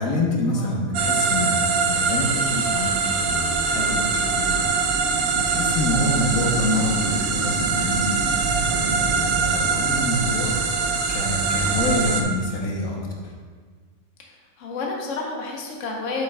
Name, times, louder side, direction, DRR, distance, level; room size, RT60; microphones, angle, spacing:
voice 1, 0.0-4.8 5.3-8.1 8.6-10.8 11.1-13.3, left 1 dB, 80° left, -1 dB, 1.4 m, -27 dB
sound 1, 0.9-12.2, right 5 dB, 70° right, 1.1 m, -23 dB
voice 2, 14.2-16.2, left 3 dB, 60° left, -1 dB, 1.2 m, -30 dB
8.2 x 7.3 x 2.2 m, 1.5 s
omnidirectional pair, 1.5 m